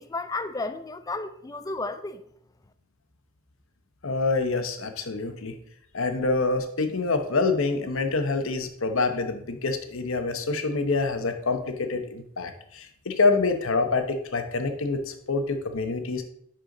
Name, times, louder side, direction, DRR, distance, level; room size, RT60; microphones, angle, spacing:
voice 1, 0.0-2.2, left 3 dB, 15° left, 0.4 m, -33 dB
voice 2, 4.0-5.6 5.9-16.2, left 3 dB, 65° left, 0.9 m, -26 dB
10.5 x 4.5 x 3.8 m
head